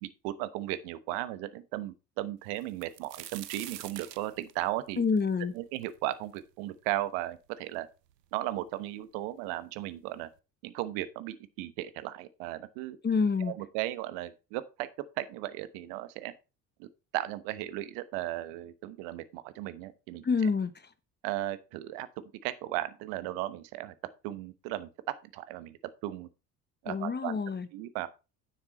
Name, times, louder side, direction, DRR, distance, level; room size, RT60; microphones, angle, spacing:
voice 1, 0.0-5.0 5.5-7.9 8.3-10.3 10.6-13.0 13.4-14.9 15.2-16.3 16.8-20.2 21.2-23.9 24.2-26.3 26.8-27.4 27.7-28.1, right 15 dB, 65° right, 1.2 m, -36 dB
sound 1, 2.6-6.4 6.9-7.0 7.7-7.8 8.1-8.8 9.7-9.8 10.1-10.3, right 12 dB, 85° right, 0.7 m, -46 dB
voice 2, 5.0-5.5 13.0-13.5 20.2-20.7 26.9-27.7, left 5 dB, 20° left, 1.1 m, -27 dB
9.6 x 7.2 x 4.2 m
figure-of-eight pair, 60°, 48 cm